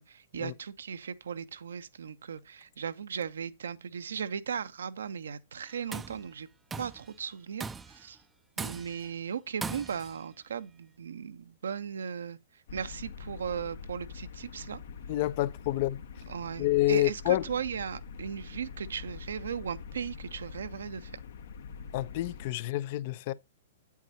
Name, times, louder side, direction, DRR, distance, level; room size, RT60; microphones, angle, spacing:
voice 1, 0.0-6.5 6.8-8.2 8.6-12.4 12.7-14.8 16.3-21.1, right 7 dB, 70° right, 0.8 m, -37 dB
Tools, 5.7-6.2 6.7-7.1 7.6-8.0 8.6-9.1 9.6-10.2, right 4 dB, 15° right, 0.5 m, -39 dB
sound 1, 12.7-22.5, left 6 dB, 60° left, 1.0 m, -44 dB
voice 2, 15.1-16.0 16.6-17.4 21.9-23.3, left 16 dB, 45° left, 0.6 m, -28 dB
9.1 x 8.4 x 2.8 m
figure-of-eight pair, 110°, 0 cm